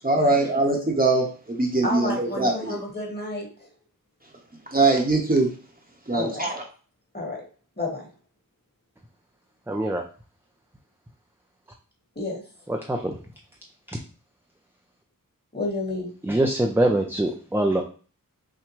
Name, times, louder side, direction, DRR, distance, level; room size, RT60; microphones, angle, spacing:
voice 1, 0.0-2.8 4.7-5.5 6.1-6.6, right 2 dB, 25° right, 0 dB, 1.0 m, -22 dB
voice 2, 1.8-3.7 6.1-6.5 7.1-7.5 7.8-8.1 12.2-12.5 15.5-16.1, left 2 dB, 30° left, -1 dB, 1.7 m, -31 dB
voice 3, 9.7-10.0 12.7-13.2 16.2-17.8, right 1 dB, 5° right, 2 dB, 0.5 m, -23 dB
5.9 x 2.2 x 3.1 m, 0.38 s
wide cardioid pair, 55°, 34 cm